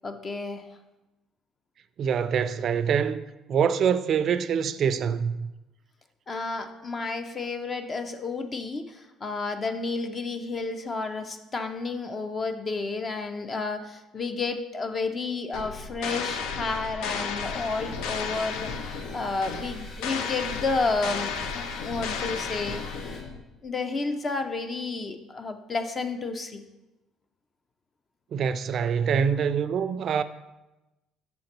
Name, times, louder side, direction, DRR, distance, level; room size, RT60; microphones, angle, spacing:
voice 1, 0.0-0.6 6.3-21.3 21.8-22.9 23.6-26.6, left 3 dB, 30° left, 0.5 m, -31 dB
voice 2, 2.0-5.5 28.3-30.2, right 7 dB, 50° right, 0.3 m, -25 dB
sound 1, 15.5-23.4, left 5 dB, 80° left, 0.6 m, -33 dB
sound 2, 17.4-23.2, left 2 dB, 65° left, 1.6 m, -47 dB
5.9 x 3.8 x 5.9 m
cardioid pair, 105°, 0 cm